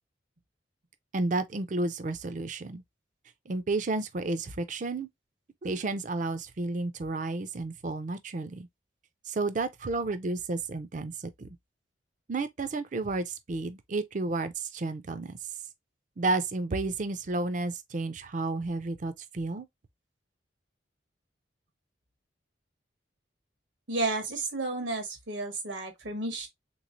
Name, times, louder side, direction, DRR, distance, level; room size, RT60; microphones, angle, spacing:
voice 1, 1.1-2.8 3.5-5.1 5.6-8.7 9.3-11.1 11.4-11.6 12.3-15.4 16.2-19.7, right 3 dB, 45° right, 0.5 m, -31 dB
voice 2, 23.9-26.5, right 2 dB, 90° right, 1.3 m, -32 dB
3.6 x 3.1 x 2.5 m
head